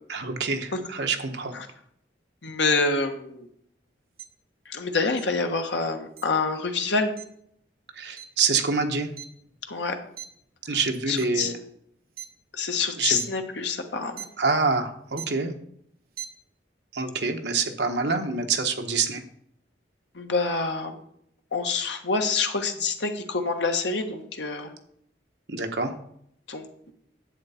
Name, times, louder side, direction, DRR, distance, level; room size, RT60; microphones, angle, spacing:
voice 1, 0.1-1.5 8.0-9.1 10.6-11.6 13.0-13.2 14.4-15.5 16.9-19.2 25.5-25.9, right 4 dB, 70° right, 5 dB, 1.2 m, -26 dB
voice 2, 2.4-3.5 4.7-7.1 9.7-10.0 10.7-10.8 11.1-11.5 12.5-14.2 20.1-21.0 21.5-24.7 26.5-26.9, left 4 dB, 75° left, 6 dB, 1.3 m, -27 dB
sound 1, 4.2-4.3 5.2-5.3 6.2-6.3 7.2-7.3 8.2-8.3 8.7-9.8 10.2-10.4 11.0-11.4 12.1-12.3 13.0-13.3 14.2-14.3 15.1-15.4 16.0-16.3, right 11 dB, 50° right, 1.0 m, -39 dB
10.5 x 8.0 x 4.3 m, 0.70 s
head